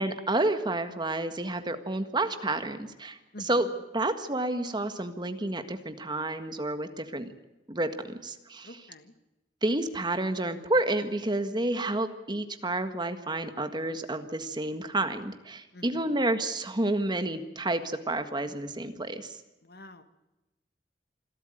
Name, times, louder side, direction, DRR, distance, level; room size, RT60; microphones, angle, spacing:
voice 1, 0.0-3.7 3.9-7.3 7.7-8.7 9.6-19.4, right 2 dB, 25° right, 9 dB, 1.6 m, -30 dB
voice 2, 3.3-3.6 8.6-9.1 15.7-16.2 19.6-20.0, left 1 dB, 60° left, 10 dB, 1.8 m, -47 dB
26.5 x 13.0 x 9.2 m, 1.0 s
head